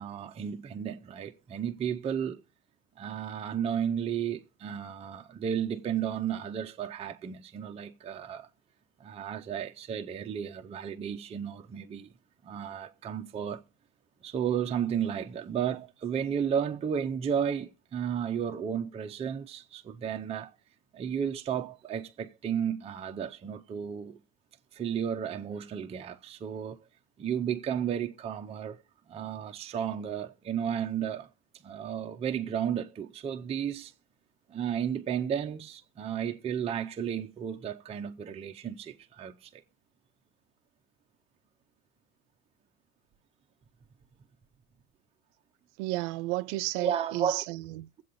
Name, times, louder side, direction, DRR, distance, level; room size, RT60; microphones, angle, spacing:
voice 1, 0.0-2.4 3.0-8.5 9.0-12.1 12.4-13.6 14.2-20.5 20.9-24.2 24.7-26.8 27.2-28.8 29.1-31.3 31.6-33.9 34.5-39.6 46.8-47.4, right 8 dB, 15° right, 0.5 m, -33 dB
voice 2, 45.8-48.0, right 19 dB, 60° right, 0.5 m, -33 dB
22.5 x 7.7 x 2.6 m
supercardioid pair, 115°, 40 cm